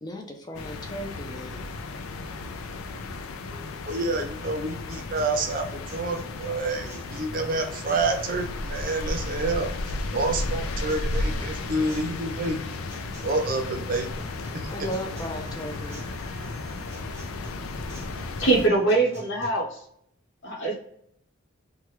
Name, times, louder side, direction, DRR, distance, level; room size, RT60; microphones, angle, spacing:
voice 1, 0.0-1.7 14.7-16.0, equal, 20° left, 3 dB, 0.4 m, -36 dB
sound 1, 0.5-18.7, left 2 dB, 90° left, 0.4 m, -34 dB
Guitar, 3.5-19.5, left 1 dB, 10° right, 0.8 m, -46 dB
voice 2, 3.9-12.6 13.2-14.1 14.5-14.7, right 2 dB, 40° right, 3 dB, 0.5 m, -28 dB
voice 3, 18.4-19.8 20.4-20.8, right 3 dB, 60° left, 0 dB, 0.9 m, -23 dB
3.1 x 2.2 x 3.1 m, 0.68 s
head